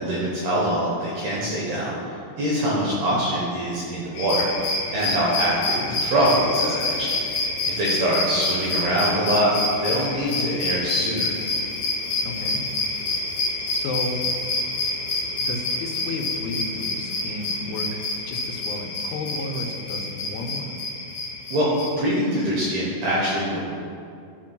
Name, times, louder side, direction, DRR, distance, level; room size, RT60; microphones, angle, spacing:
voice 1, 0.0-2.0 2.4-7.1 7.7-9.5 9.8-11.3 21.5-21.7 22.0-23.6, equal, 75° right, -6 dB, 2.4 m, -24 dB
sound 1, 4.1-21.9, left 2 dB, 55° left, 3.2 m, -27 dB
voice 2, 10.2-10.6 12.2-13.2 13.7-14.2 15.4-20.8, left 2 dB, 85° left, 3 dB, 3.5 m, -33 dB
15.5 x 5.9 x 2.3 m, 2.4 s
omnidirectional pair, 5.9 m